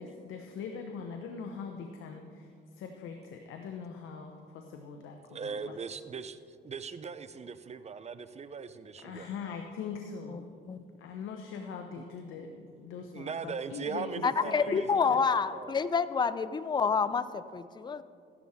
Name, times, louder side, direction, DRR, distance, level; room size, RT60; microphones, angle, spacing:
voice 1, 0.0-5.6 9.0-10.5 11.0-14.0 14.4-14.8 15.1-15.2, left 6 dB, 85° left, 4 dB, 0.9 m, -42 dB
voice 2, 5.3-9.3 12.0-12.1 13.0-15.7, right 5 dB, 35° right, 13 dB, 0.6 m, -40 dB
voice 3, 14.2-18.0, left 5 dB, 20° left, 14 dB, 0.4 m, -28 dB
14.0 x 11.0 x 3.6 m, 2.3 s
cardioid pair, 90°, 20 cm